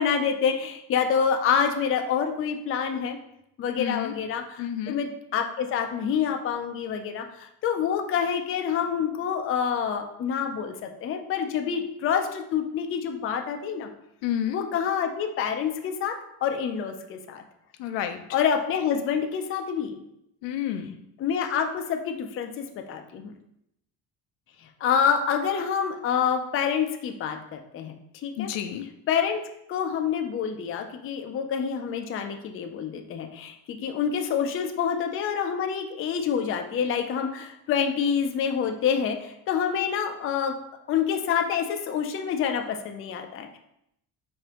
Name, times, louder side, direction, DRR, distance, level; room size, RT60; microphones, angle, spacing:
voice 1, 0.0-3.2 3.6-13.9 14.5-16.2 16.4-17.4 18.3-20.0 21.2-23.3 24.8-27.9 28.2-28.5 29.1-29.4 29.7-40.5 40.9-43.6, left 7 dB, 35° left, 5 dB, 0.4 m, -27 dB
voice 2, 3.8-4.1 4.6-5.0 14.2-14.6 17.8-18.2 20.4-20.9 28.4-28.9, left 10 dB, 85° left, 8 dB, 0.5 m, -30 dB
4.9 x 2.6 x 2.9 m, 0.78 s
cardioid pair, 125°, 42 cm